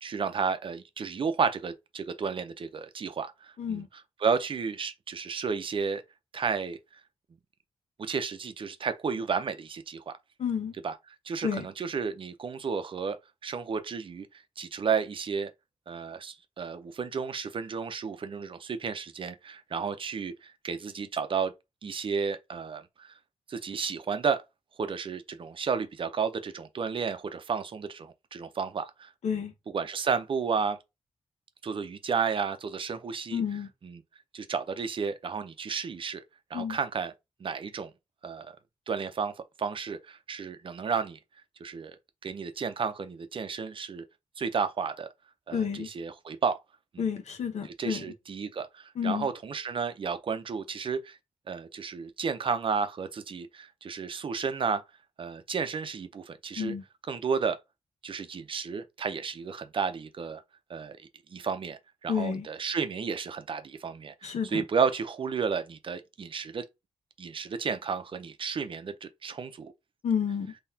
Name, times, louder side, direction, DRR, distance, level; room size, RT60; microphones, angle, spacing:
voice 1, 0.0-6.0 6.3-6.8 8.0-10.1 10.8-13.2 13.4-14.3 14.6-15.5 15.9-21.5 21.8-23.1 23.5-24.4 24.8-29.1 29.7-30.8 31.6-33.4 33.8-34.0 34.3-36.2 36.5-37.1 37.4-37.9 38.2-38.6 38.9-39.3 39.6-41.2 41.6-42.0 42.2-44.0 44.4-45.1 45.5-46.6 46.9-47.1 47.6-51.2 51.5-54.8 55.2-56.7 57.1-57.6 58.0-60.4 60.7-61.0 61.3-66.7 67.2-69.7, right 5 dB, 45° right, 0.6 m, -32 dB
voice 2, 10.4-10.7 11.4-11.6 29.2-29.5 33.3-33.7 36.5-36.8 45.5-45.9 47.0-48.0 49.0-49.3 56.6-56.8 62.1-62.4 64.2-64.6 70.0-70.5, left 7 dB, 70° left, 1.0 m, -30 dB
3.9 x 2.9 x 2.7 m
wide cardioid pair, 145°, 12 cm